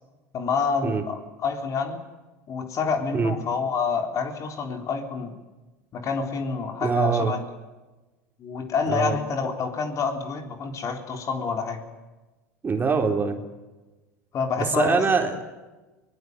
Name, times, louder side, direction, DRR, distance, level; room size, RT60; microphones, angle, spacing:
voice 1, 0.3-2.0 2.5-5.4 5.9-7.4 8.4-11.9 14.3-15.0, left 5 dB, 40° left, 5 dB, 3.8 m, -27 dB
voice 2, 6.8-7.3 8.9-9.2 12.6-13.4 14.6-15.4, right 5 dB, 25° right, 4 dB, 3.8 m, -23 dB
22.0 x 20.0 x 9.5 m, 1.1 s
hypercardioid pair, 85°, 8 cm